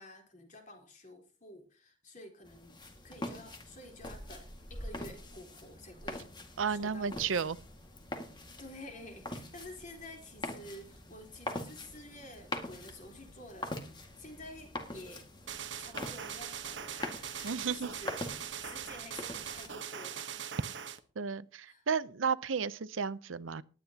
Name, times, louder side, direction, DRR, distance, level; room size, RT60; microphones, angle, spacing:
voice 1, 0.0-2.8 3.0-6.3 6.7-7.3 8.6-13.8 14.2-15.3 15.8-18.2 18.6-20.5 21.6-21.8, left 1 dB, 40° left, 3.9 m, -50 dB
sound 1, 2.4-19.7, left 1 dB, 25° left, 1.9 m, -44 dB
sound 2, 3.4-15.6, equal, 85° left, 6.2 m, -54 dB
voice 2, 6.6-7.6 17.4-17.9 21.2-23.6, right 6 dB, 85° right, 0.6 m, -33 dB
sound 3, 15.5-21.0, right 8 dB, 65° right, 1.1 m, -41 dB
19.0 x 10.0 x 2.9 m
head